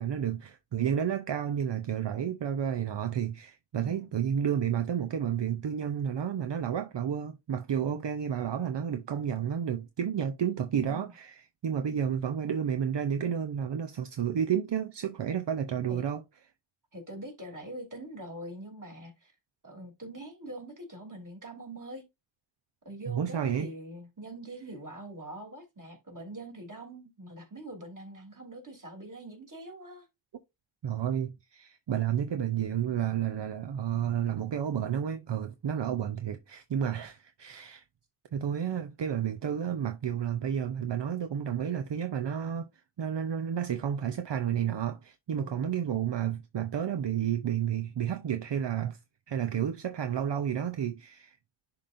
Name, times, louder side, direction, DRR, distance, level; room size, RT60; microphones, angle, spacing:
voice 1, 0.0-16.2 23.1-23.7 30.8-37.8 38.3-42.7 43.0-49.0 49.3-51.4, right 8 dB, 75° right, 0.6 m, -31 dB
voice 2, 10.7-11.1 15.9-16.0 16.9-19.3 19.6-22.0 22.8-30.1 45.3-45.7, right 1 dB, 45° right, 3.0 m, -44 dB
11.0 x 3.8 x 2.5 m
wide cardioid pair, 45°, 43 cm